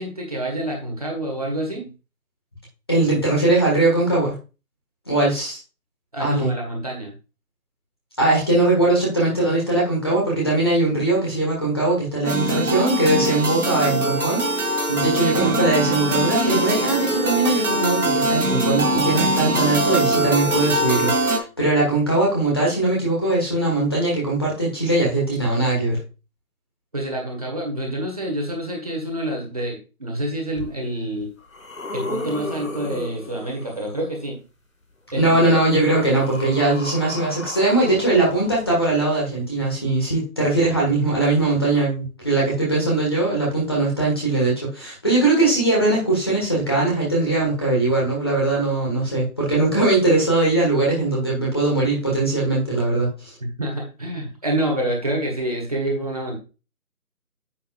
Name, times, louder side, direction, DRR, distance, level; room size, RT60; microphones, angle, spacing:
voice 1, 0.0-1.9 6.1-7.1 26.9-31.3 31.9-34.4 35.1-35.4 53.4-56.4, right 1 dB, 25° right, 0 dB, 1.6 m, -27 dB
voice 2, 2.9-4.4 5.1-5.6 6.2-6.5 8.2-26.0 35.1-53.3, right 2 dB, 15° left, -4 dB, 1.6 m, -20 dB
sound 1, 12.2-21.4, right 1 dB, 70° right, 2.3 m, -22 dB
sound 2, 30.6-30.7 31.2-34.0 35.2-39.1 40.0-40.1, left 2 dB, 65° left, 2.5 m, -35 dB
9.6 x 7.1 x 2.4 m, 0.31 s
figure-of-eight pair, 170°, 45 cm